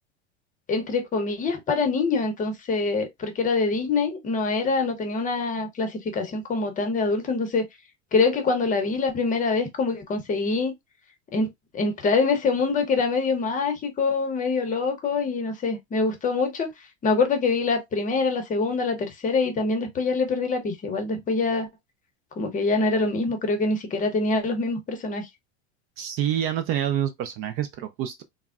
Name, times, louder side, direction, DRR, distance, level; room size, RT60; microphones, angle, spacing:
voice 1, 0.7-7.7 8.1-10.7 11.3-16.7 17.0-21.7 22.4-25.3, left 4 dB, 25° left, 0.7 m, -25 dB
voice 2, 26.0-28.2, right 10 dB, 40° right, 0.4 m, -27 dB
3.4 x 2.1 x 2.3 m
supercardioid pair, 125°, 34 cm